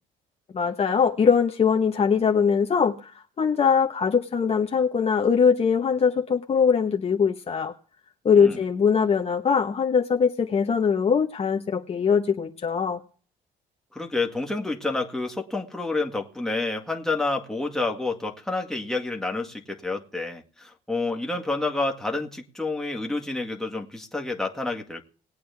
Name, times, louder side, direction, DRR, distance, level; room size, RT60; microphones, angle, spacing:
voice 1, 0.5-7.7 8.2-13.0, left 6 dB, 35° left, 2 dB, 1.2 m, -22 dB
voice 2, 13.9-25.0, left 3 dB, 5° left, 1 dB, 2.0 m, -29 dB
20.0 x 8.7 x 3.5 m, 0.39 s
cardioid pair, 110°, 17 cm